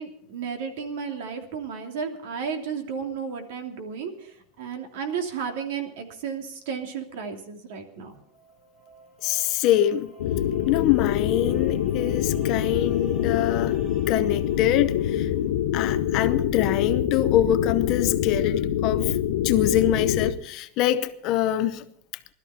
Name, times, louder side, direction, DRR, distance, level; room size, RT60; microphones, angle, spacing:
voice 1, 0.0-8.1, right 6 dB, 60° right, 2.9 m, -33 dB
sound 1, 7.9-15.6, right 3 dB, 10° right, 6.5 m, -52 dB
voice 2, 9.2-10.1 10.7-13.8 14.1-15.3 15.7-19.2 19.4-21.9, left 12 dB, 35° left, 0.7 m, -24 dB
sound 2, 10.2-20.3, left 10 dB, 85° left, 1.5 m, -25 dB
20.0 x 13.0 x 4.4 m
supercardioid pair, 180°, 0 cm